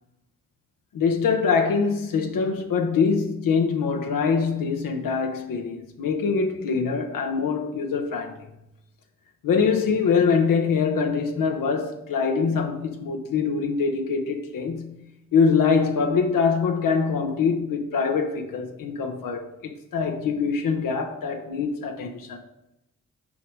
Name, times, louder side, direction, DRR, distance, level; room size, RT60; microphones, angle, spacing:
voice 1, 0.9-8.5 9.4-15.0 15.3-22.4, left 5 dB, 90° left, 1.0 m, -24 dB
7.6 x 5.1 x 4.6 m
cardioid pair, 60°, 32 cm